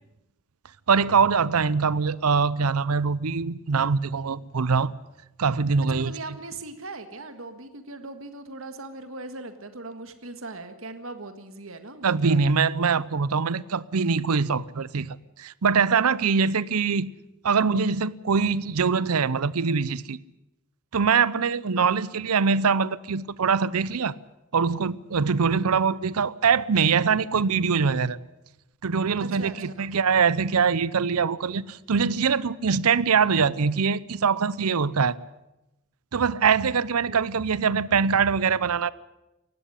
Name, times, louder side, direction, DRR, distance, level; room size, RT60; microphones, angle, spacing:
voice 1, 0.9-4.9 5.4-6.1 12.0-15.1 15.4-17.1 17.4-20.2 20.9-24.1 24.5-28.2 28.8-35.2 36.1-38.9, right 5 dB, 90° right, 0.7 m, -23 dB
voice 2, 5.8-12.4 21.7-21.9 29.2-29.9 37.1-37.2, right 2 dB, 65° right, 1.7 m, -39 dB
18.5 x 15.5 x 9.9 m
head